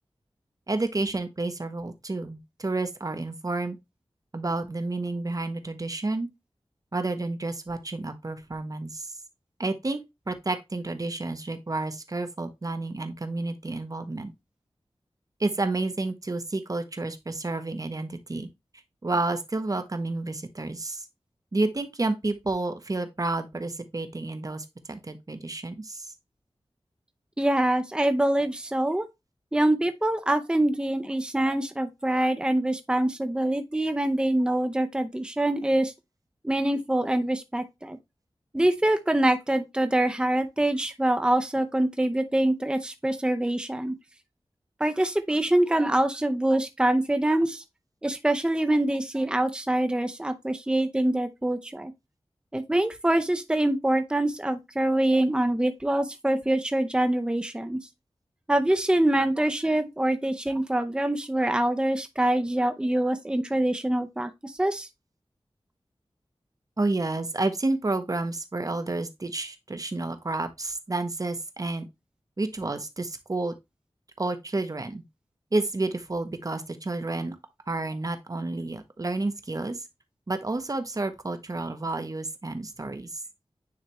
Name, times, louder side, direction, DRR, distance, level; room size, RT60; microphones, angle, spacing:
voice 1, 0.7-3.8 4.3-6.3 6.9-9.1 9.6-10.0 10.3-14.3 15.4-18.5 19.0-21.1 21.5-26.1 66.8-71.9 72.4-73.5 74.2-75.0 75.5-77.4 77.7-79.9 80.3-83.2, right 2 dB, 35° right, 0.9 m, -30 dB
voice 2, 27.4-29.0 29.5-35.9 36.4-38.0 38.5-43.9 44.8-47.6 48.0-51.9 52.5-57.8 58.5-64.9, right 1 dB, 10° right, 0.6 m, -25 dB
9.5 x 3.3 x 3.1 m
wide cardioid pair, 80°, 10 cm